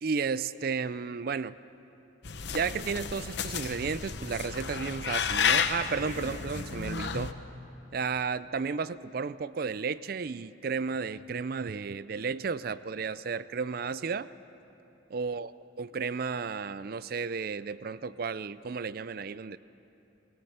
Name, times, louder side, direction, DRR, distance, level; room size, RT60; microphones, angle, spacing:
voice 1, 0.0-1.6 2.5-7.3 7.9-14.3 15.1-15.5 15.8-19.6, right 5 dB, 50° right, 16 dB, 0.4 m, -33 dB
sound 1, 2.2-7.3, left 6 dB, 60° left, 0.8 m, -32 dB
19.5 x 19.0 x 7.9 m, 3.0 s
head